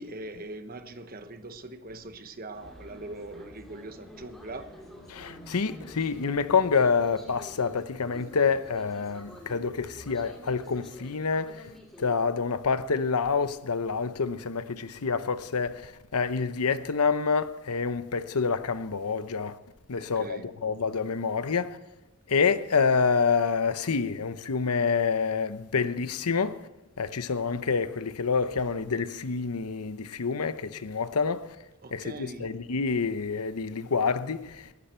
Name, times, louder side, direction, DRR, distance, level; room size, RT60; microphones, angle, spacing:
voice 1, 0.0-5.0 19.9-20.5 31.8-32.6, right 2 dB, 40° right, 1.1 m, -42 dB
sound 1, 2.5-12.1, equal, ahead, 2.5 m, -48 dB
voice 2, 5.1-11.6 12.0-19.5 19.9-21.7 22.3-26.6 27.0-31.4 31.9-34.7, left 5 dB, 90° left, 0.8 m, -27 dB
19.0 x 12.5 x 4.5 m
head